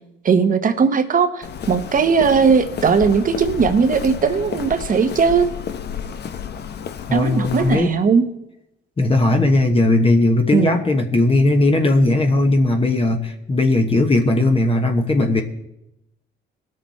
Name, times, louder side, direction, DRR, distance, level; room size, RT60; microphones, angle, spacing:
voice 1, 0.2-5.5 7.1-8.3 10.5-10.8, right 5 dB, 45° right, 9 dB, 1.1 m, -18 dB
Walk footsteps, 1.4-7.8, left 8 dB, 60° left, 0.8 m, -31 dB
voice 2, 7.1-7.9 9.0-15.4, left 2 dB, 30° left, 4 dB, 1.2 m, -17 dB
19.0 x 6.7 x 4.3 m, 0.86 s
cardioid pair, 90°, 20 cm